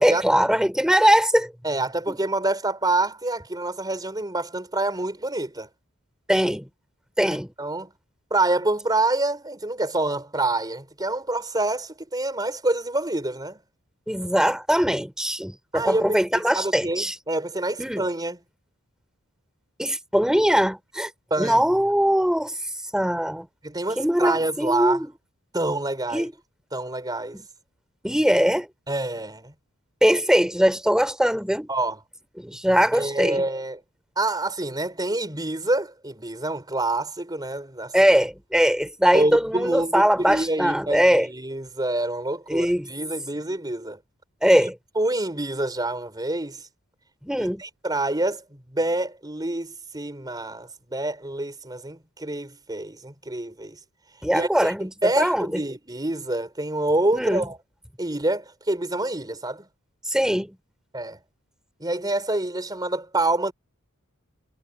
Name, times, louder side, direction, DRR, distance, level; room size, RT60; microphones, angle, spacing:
voice 1, 0.0-1.5 2.1-2.2 6.3-6.7 7.2-7.5 14.1-17.1 17.8-18.1 19.8-21.1 21.4-22.6 22.9-23.5 24.0-25.1 26.1-26.3 27.3-27.4 28.0-28.7 30.0-31.7 32.4-33.5 37.9-41.3 42.5-42.9 44.4-44.8 47.2-47.6 54.2-55.6 57.1-57.5 60.0-60.6, equal, 5° right, 3.3 m, -21 dB
voice 2, 1.6-5.7 7.3-7.9 8.3-13.6 15.7-16.2 16.5-18.4 21.3-21.6 23.6-25.0 25.5-26.3 26.7-27.4 28.9-29.5 31.7-32.0 32.9-33.8 34.2-38.1 39.1-44.0 45.0-46.6 47.4-53.8 54.3-57.6 58.0-59.7 60.9-61.2 61.8-63.5, right 2 dB, 20° right, 4.5 m, -27 dB
head